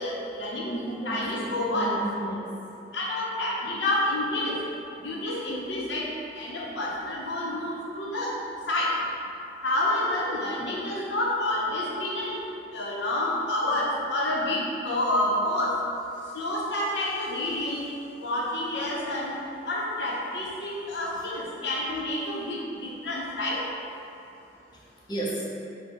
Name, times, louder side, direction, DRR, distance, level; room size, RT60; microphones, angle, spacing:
voice 1, 0.0-0.7 1.0-1.9 2.9-4.6 5.0-6.1 6.4-8.3 8.7-8.9 9.6-12.4 12.7-15.7 16.3-17.9 18.2-19.3 19.7-23.6, left 1 dB, 80° left, -4 dB, 0.7 m, -28 dB
voice 2, 0.6-2.5 25.1-25.5, right 1 dB, 25° left, -4 dB, 0.6 m, -33 dB
4.3 x 2.2 x 4.3 m, 2.8 s
head